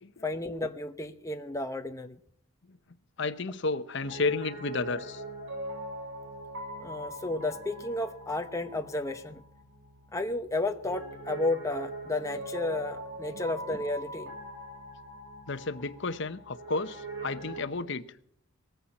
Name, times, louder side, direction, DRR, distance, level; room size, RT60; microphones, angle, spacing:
voice 1, 0.2-2.2 6.8-9.4 10.1-14.3, left 2 dB, 15° left, 0.8 m, -32 dB
voice 2, 3.2-5.2 13.3-13.4 15.5-18.0, left 3 dB, 60° left, 0.9 m, -32 dB
Piano, 4.0-17.7, right 1 dB, 65° right, 4.4 m, -42 dB
19.5 x 14.5 x 4.2 m
head